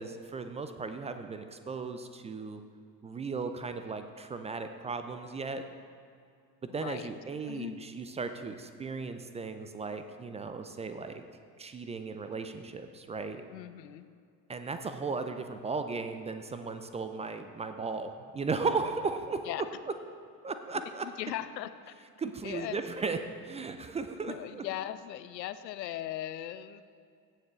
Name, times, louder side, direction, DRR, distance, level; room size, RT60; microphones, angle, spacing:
voice 1, 0.0-2.6 3.0-5.6 6.7-11.2 11.6-13.4 14.5-19.6 20.4-21.1 22.2-24.6, right 4 dB, 15° right, 8 dB, 0.4 m, -36 dB
voice 2, 6.7-7.1 7.4-7.8 13.5-14.0 19.5-19.6 20.7-22.0 22.4-22.8 24.3-26.8, left 12 dB, 80° left, 13 dB, 0.6 m, -39 dB
16.0 x 7.3 x 3.2 m, 2.4 s
figure-of-eight pair, 60°, 50 cm